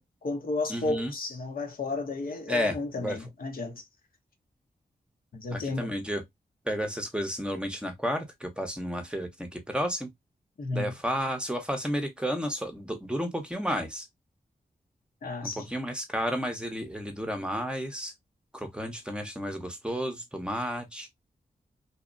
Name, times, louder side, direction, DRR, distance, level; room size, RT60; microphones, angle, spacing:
voice 1, 0.0-3.8 5.3-5.9 10.6-10.9 15.2-15.7, left 3 dB, 65° left, 0.7 m, -33 dB
voice 2, 0.7-1.1 2.5-3.2 5.5-6.2 6.7-10.1 10.7-14.1 15.4-18.1 18.5-21.1, equal, 5° right, 0.7 m, -32 dB
2.7 x 2.0 x 2.4 m
cardioid pair, 60°, 16 cm